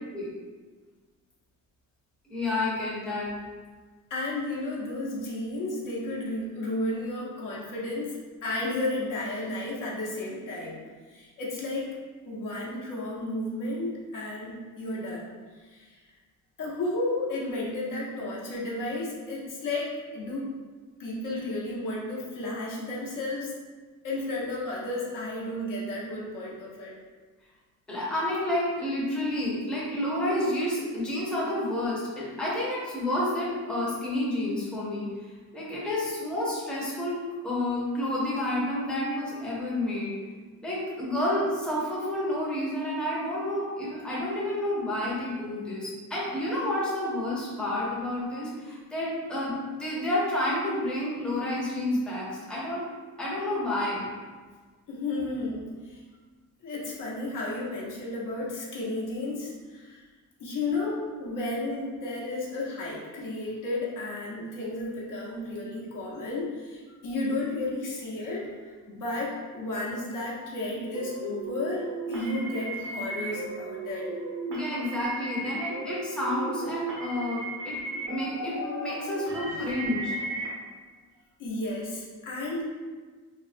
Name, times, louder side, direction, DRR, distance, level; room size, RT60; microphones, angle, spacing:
voice 1, 2.2-3.3 27.9-35.1 35.5-37.2 37.4-40.1 40.6-52.9 53.2-54.1 74.5-77.8 78.1-80.1, left 1 dB, 5° left, -7 dB, 0.6 m, -30 dB
voice 2, 4.1-10.8 11.1-11.9 12.2-15.3 15.6-16.0 16.6-20.5 21.0-23.5 24.0-27.0 54.9-56.0 56.6-60.0 60.4-74.1 79.3-79.6 81.4-82.7, left 2 dB, 60° left, -5 dB, 0.8 m, -33 dB
sound 1, 70.9-80.5, right 2 dB, 75° right, 0.9 m, -35 dB
3.4 x 2.0 x 2.5 m, 1.4 s
cardioid pair, 135°, 35 cm